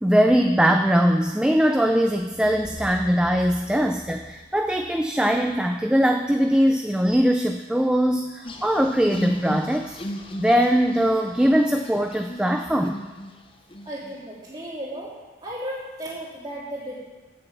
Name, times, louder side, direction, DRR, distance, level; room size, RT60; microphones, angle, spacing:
voice 1, 0.0-10.0 10.4-13.0, equal, 5° right, 5 dB, 0.3 m, -21 dB
sound 1, 2.2-6.3, equal, 65° right, 1.9 m, -43 dB
sound 2, 8.4-13.3 13.7-14.1, equal, 30° left, 0.7 m, -36 dB
voice 2, 13.8-15.1 15.4-17.0, equal, 20° right, -8 dB, 3.4 m, -34 dB
9.1 x 7.0 x 7.2 m, 1.3 s
head